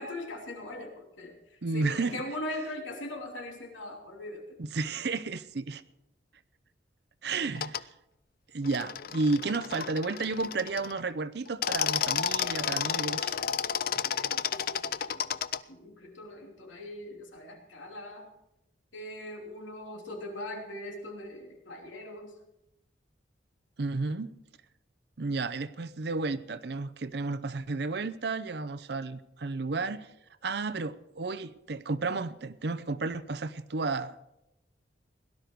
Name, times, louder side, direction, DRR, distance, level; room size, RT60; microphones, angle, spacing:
voice 1, 0.0-4.6 13.9-15.4 15.7-18.3 18.9-22.3, left 1 dB, 90° left, 1 dB, 3.1 m, -41 dB
voice 2, 1.6-2.2 4.6-5.8 7.2-7.9 8.5-13.4 23.8-24.3 25.2-30.1 30.4-34.2, right 3 dB, 60° right, 13 dB, 0.6 m, -32 dB
sound 1, 7.5-7.8 8.6-11.0 11.5-15.6, left 8 dB, 50° left, 0.4 m, -31 dB
17.5 x 12.0 x 4.6 m, 0.88 s
head